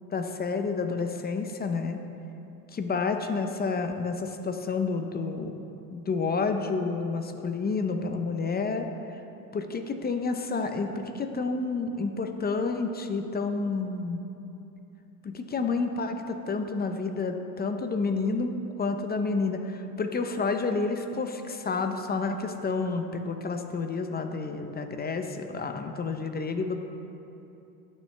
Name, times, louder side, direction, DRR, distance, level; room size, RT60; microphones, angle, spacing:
voice 1, 0.1-2.0 2.7-5.5 5.9-8.9 9.5-14.2 15.2-18.5 18.8-26.8, left 4 dB, 25° left, 6 dB, 0.6 m, -29 dB
18.0 x 6.5 x 3.2 m, 2.9 s
supercardioid pair, 110°, 39 cm